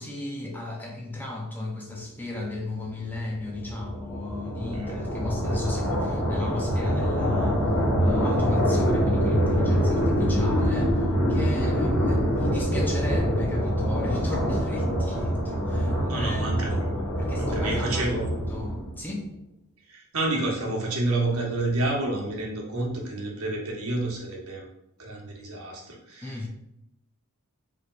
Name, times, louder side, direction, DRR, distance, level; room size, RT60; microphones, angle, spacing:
voice 1, 0.0-7.6 8.0-16.4 17.2-18.1 18.5-19.3 26.2-26.5, left 2 dB, 10° left, -1 dB, 0.5 m, -35 dB
sound 1, 2.8-19.1, equal, 85° left, 1.0 m, -25 dB
voice 2, 16.1-16.8 17.4-18.3 19.9-24.7 25.0-26.5, right 2 dB, 70° right, -2 dB, 1.1 m, -29 dB
4.6 x 3.3 x 2.4 m, 0.81 s
head